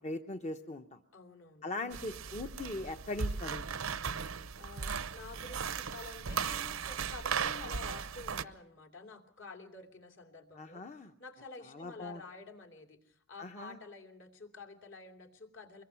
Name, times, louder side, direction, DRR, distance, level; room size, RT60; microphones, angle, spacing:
voice 1, 0.0-1.0 1.6-3.9 10.5-11.1 11.7-12.2 13.4-13.8, left 2 dB, 35° left, 6 dB, 0.8 m, -40 dB
voice 2, 1.1-2.0 4.6-15.8, left 3 dB, 65° left, 5 dB, 2.8 m, -50 dB
sound 1, 1.9-8.4, right 6 dB, 85° right, 0.8 m, -37 dB
24.5 x 21.5 x 5.8 m, 0.65 s
head